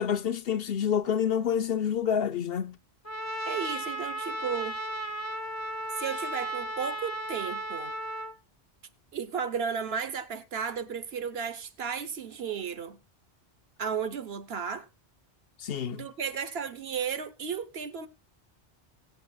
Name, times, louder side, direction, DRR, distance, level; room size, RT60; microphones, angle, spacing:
voice 1, 0.0-2.8 15.6-16.0, left 8 dB, 60° left, 0.9 m, -28 dB
Trumpet, 3.1-8.3, right 1 dB, 15° left, 1.0 m, -35 dB
voice 2, 3.4-4.8 6.0-7.9 9.1-13.0 13.8-14.9 15.9-18.1, right 7 dB, 65° right, 1.1 m, -34 dB
23.0 x 7.9 x 2.3 m
omnidirectional pair, 1.2 m